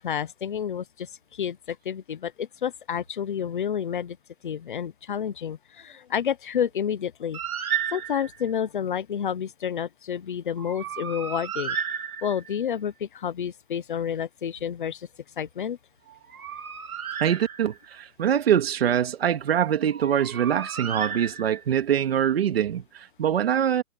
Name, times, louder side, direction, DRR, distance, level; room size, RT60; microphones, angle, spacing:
voice 1, 0.0-4.2 4.4-7.4 7.9-11.8 12.2-15.1 15.4-15.8, left 8 dB, 35° left, 0.8 m, -30 dB
Bird, 7.3-8.5 10.6-12.6 16.1-17.9 19.9-21.8, right 8 dB, 90° right, 3.3 m, -33 dB
voice 2, 17.2-23.8, right 9 dB, 45° right, 2.4 m, -24 dB
hypercardioid pair, 175°, 42 cm